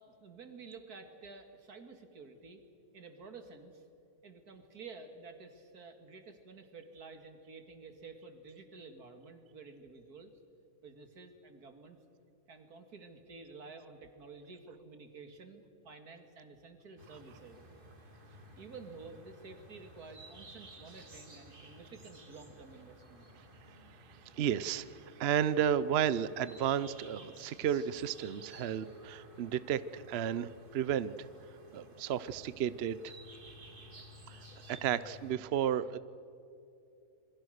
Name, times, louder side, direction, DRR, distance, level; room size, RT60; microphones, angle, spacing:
voice 1, 0.0-2.6 2.9-3.8 4.2-10.3 10.8-12.0 12.5-17.6 18.5-23.3 33.4-33.5 33.9-34.9, right 4 dB, 75° right, 7 dB, 2.6 m, -51 dB
sound 1, 17.0-35.3, right 1 dB, 35° right, 2.3 m, -55 dB
voice 2, 24.4-31.3 31.7-33.1 34.3-36.0, right 9 dB, 55° right, 16 dB, 0.7 m, -33 dB
27.0 x 22.0 x 6.5 m, 2.7 s
omnidirectional pair, 1.7 m